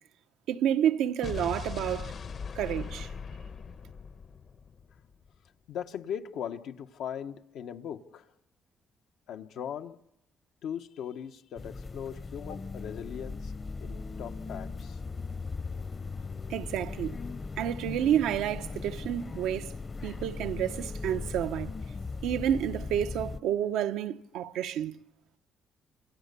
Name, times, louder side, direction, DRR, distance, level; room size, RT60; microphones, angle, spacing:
voice 1, 0.5-2.1 2.5-3.1 16.5-17.2 17.6-19.7 20.0-21.7 22.2-25.0, right 10 dB, 90° right, 0.9 m, -29 dB
Explosion, 1.2-5.3, left 6 dB, 55° left, 1.1 m, -40 dB
voice 2, 5.7-8.3 9.3-10.0 10.6-13.5 13.8-15.0, left 8 dB, 80° left, 1.2 m, -39 dB
sound 1, 11.6-23.4, left 4 dB, 35° left, 0.9 m, -38 dB
27.5 x 27.5 x 6.9 m
cardioid pair, 90°, 0 cm